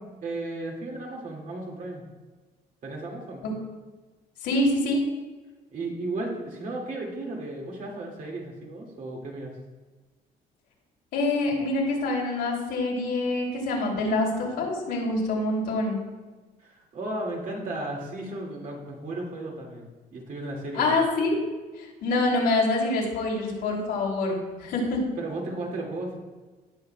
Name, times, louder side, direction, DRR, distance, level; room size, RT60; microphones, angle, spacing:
voice 1, 0.2-2.0 2.8-3.4 5.7-9.5 16.6-20.9 25.2-26.2, right 2 dB, 50° right, -1 dB, 2.1 m, -34 dB
voice 2, 4.4-5.0 11.1-16.0 20.7-21.4 21.8-25.0, left 2 dB, 80° left, -3 dB, 3.0 m, -26 dB
17.0 x 5.8 x 2.3 m, 1.3 s
cardioid pair, 110°, 17 cm